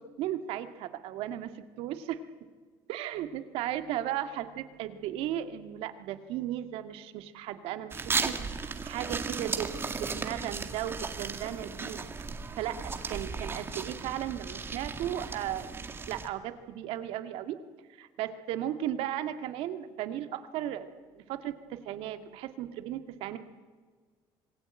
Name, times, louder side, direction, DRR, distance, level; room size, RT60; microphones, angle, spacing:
voice 1, 0.0-2.2 2.9-12.0 12.6-17.6 18.0-20.9 21.1-23.4, right 11 dB, 80° right, 9 dB, 2.0 m, -36 dB
sound 1, 7.9-16.3, right 4 dB, 25° right, 2.0 m, -36 dB
26.0 x 20.5 x 9.0 m, 1.5 s
cardioid pair, 135°, 10 cm